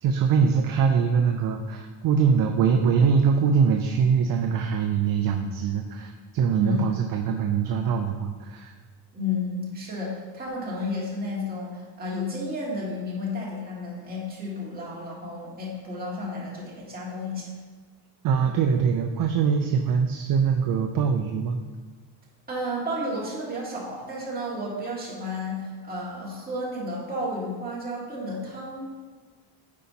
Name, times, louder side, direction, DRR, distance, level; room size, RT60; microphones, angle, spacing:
voice 1, 0.0-8.7 18.2-21.6, right 6 dB, 45° right, 4 dB, 0.5 m, -23 dB
voice 2, 9.1-17.5 22.5-28.9, left 1 dB, 20° right, -6 dB, 1.9 m, -32 dB
8.3 x 5.3 x 2.8 m, 1.4 s
cardioid pair, 135°, 48 cm